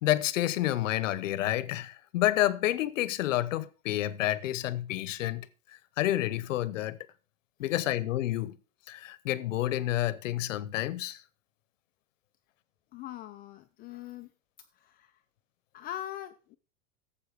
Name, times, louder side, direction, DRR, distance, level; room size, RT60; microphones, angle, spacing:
voice 1, 0.0-5.5 6.0-7.0 7.6-8.6 8.9-11.2, left 14 dB, 90° left, 1.0 m, -29 dB
voice 2, 12.9-14.3 14.8-15.2 15.7-16.6, left 12 dB, 25° left, 0.4 m, -42 dB
12.0 x 7.5 x 4.7 m
supercardioid pair, 145°, 37 cm